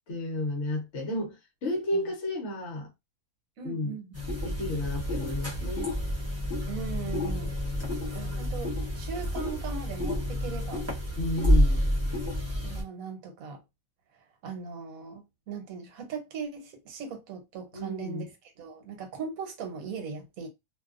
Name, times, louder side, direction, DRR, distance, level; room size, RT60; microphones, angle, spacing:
voice 1, 0.1-2.9 3.6-3.9 4.4-5.9 11.2-11.9 17.7-18.3, left 1 dB, 55° left, 1.0 m, -32 dB
voice 2, 3.6-4.1 6.7-7.5 8.1-10.8 12.6-13.6 14.4-18.2 18.6-20.5, right 6 dB, 70° right, 1.2 m, -39 dB
sound 1, 4.1-12.8, equal, 15° right, 0.8 m, -29 dB
2.7 x 2.2 x 2.4 m
omnidirectional pair, 1.5 m